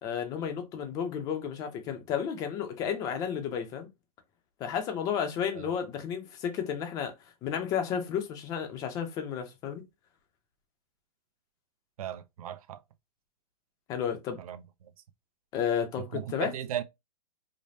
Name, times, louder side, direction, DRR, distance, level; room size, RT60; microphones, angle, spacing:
voice 1, 0.0-3.9 4.6-7.1 7.4-9.8 13.9-14.4 15.5-16.5, left 8 dB, 15° left, 0.6 m, -32 dB
voice 2, 12.0-12.8 14.4-14.6 16.1-16.8, right 11 dB, 60° right, 0.6 m, -36 dB
5.1 x 2.1 x 2.7 m
hypercardioid pair, 170°, 21 cm